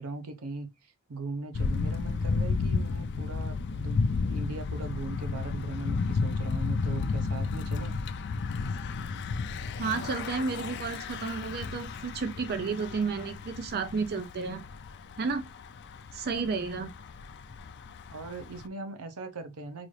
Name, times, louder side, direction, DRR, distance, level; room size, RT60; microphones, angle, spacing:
voice 1, 0.0-8.0 18.1-19.9, right 3 dB, 90° right, 0.7 m, -39 dB
Thunder / Bicycle, 1.5-18.7, left 4 dB, 50° left, 0.4 m, -32 dB
voice 2, 9.8-14.6 15.2-15.4 16.1-16.9, right 4 dB, 45° right, 0.4 m, -32 dB
3.9 x 2.5 x 3.2 m
head